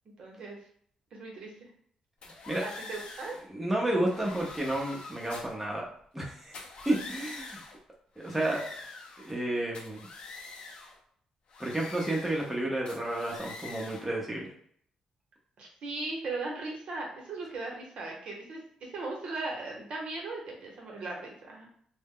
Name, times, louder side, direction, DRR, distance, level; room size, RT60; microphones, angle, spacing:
voice 1, 0.2-0.6 1.1-1.7 2.6-3.4 15.6-21.7, right 3 dB, 60° right, -1 dB, 0.8 m, -38 dB
sound 1, 2.2-3.4 4.0-5.6 6.4-7.8 8.2-9.4 9.7-11.0 11.5-12.6 12.9-14.1, left 3 dB, 55° left, 0.5 m, -45 dB
voice 2, 3.5-5.9 6.1-6.6 6.9-7.6 8.2-8.6 9.2-10.1 11.6-14.5, right 1 dB, 5° right, -3 dB, 0.6 m, -31 dB
2.1 x 2.0 x 3.5 m, 0.62 s
cardioid pair, 115°, 2 cm